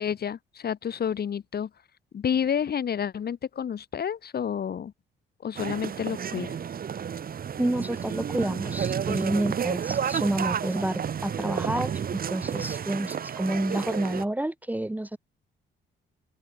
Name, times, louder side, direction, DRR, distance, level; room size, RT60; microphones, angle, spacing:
voice 1, 0.0-1.7 2.1-4.9 5.4-6.6, left 8 dB, 50° left, 3.0 m, -29 dB
sound 1, 5.5-14.2, right 8 dB, 45° right, 1.5 m, -31 dB
voice 2, 7.6-15.2, right 1 dB, 10° right, 1.2 m, -29 dB
open air
cardioid pair, 90°, 20 cm